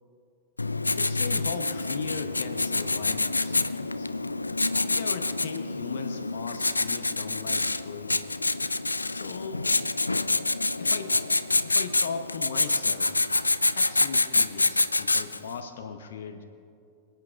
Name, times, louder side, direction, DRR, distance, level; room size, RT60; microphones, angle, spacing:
Writing, 0.6-15.5, left 3 dB, 80° left, 0.3 m, -27 dB
voice 1, 1.0-4.1 4.8-8.2 9.1-9.6 10.8-11.2 11.6-13.3 13.7-16.4, left 6 dB, 60° left, 8 dB, 0.7 m, -38 dB
26.5 x 9.0 x 2.4 m, 2.4 s
figure-of-eight pair, 90°, 0 cm